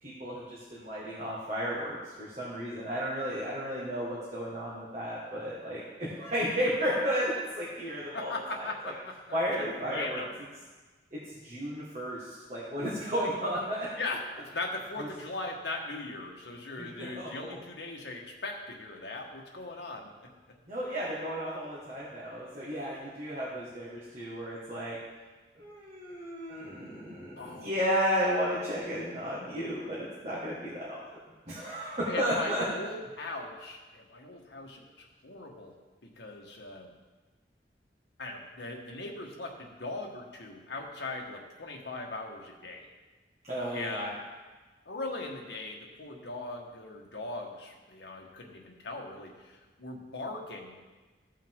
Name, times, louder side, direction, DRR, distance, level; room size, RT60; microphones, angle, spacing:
voice 1, 0.0-8.4 8.8-8.9 9.3-10.2 11.1-13.9 15.0-15.1 16.8-17.5 20.6-25.0 25.5-31.0 31.5-32.7 43.4-44.1, equal, 40° right, -8 dB, 1.7 m, -33 dB
voice 2, 8.1-8.9 9.3-10.3 14.0-20.3 27.4-27.7 32.1-34.9 35.2-35.7 36.0-36.9 38.2-42.9 43.7-44.2 44.8-50.7, left 2 dB, 75° left, 0 dB, 1.4 m, -39 dB
15.0 x 5.5 x 3.7 m, 1.3 s
head